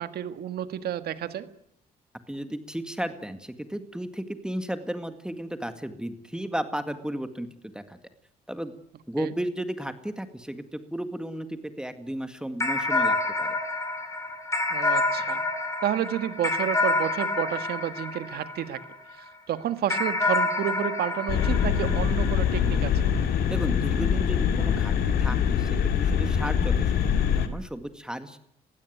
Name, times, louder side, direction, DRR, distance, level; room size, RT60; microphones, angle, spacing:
voice 1, 0.0-1.4 9.2-9.3 14.7-15.4 15.8-18.8 19.1-23.1, right 11 dB, 80° right, 11 dB, 1.6 m, -30 dB
voice 2, 2.3-8.0 8.5-8.7 9.1-13.6 23.5-28.4, right 1 dB, 5° right, 9 dB, 1.9 m, -34 dB
sound 1, 12.6-19.2 19.9-22.7, left 2 dB, 20° left, 5.6 m, -28 dB
sound 2, 21.3-27.5, left 8 dB, 85° left, 2.3 m, -24 dB
21.0 x 16.0 x 9.5 m, 0.72 s
cardioid pair, 85°, 16 cm